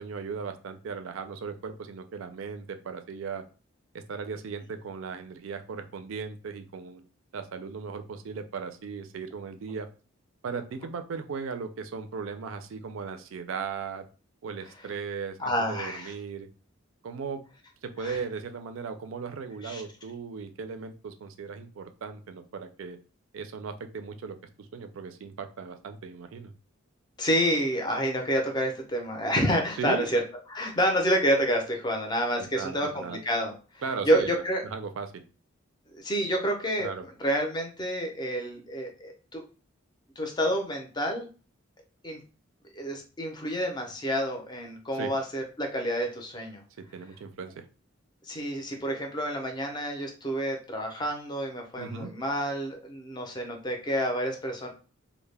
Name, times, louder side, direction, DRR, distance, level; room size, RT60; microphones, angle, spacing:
voice 1, 0.0-3.4 3.9-7.0 7.3-9.9 10.4-14.1 14.4-16.5 17.0-17.4 17.8-23.0 23.3-26.5 29.8-30.1 32.4-33.2 33.8-35.2 36.8-37.0 44.9-45.1 46.9-47.6 51.8-52.1, right 5 dB, 80° right, 9 dB, 0.4 m, -37 dB
voice 2, 15.4-16.1 18.0-18.2 19.6-19.8 27.2-30.2 30.5-33.5 34.0-34.6 35.9-36.9 37.2-39.4 40.2-41.3 42.0-42.2 42.7-46.6 48.2-54.7, equal, 20° left, 2 dB, 0.5 m, -28 dB
2.2 x 2.0 x 3.2 m, 0.36 s
head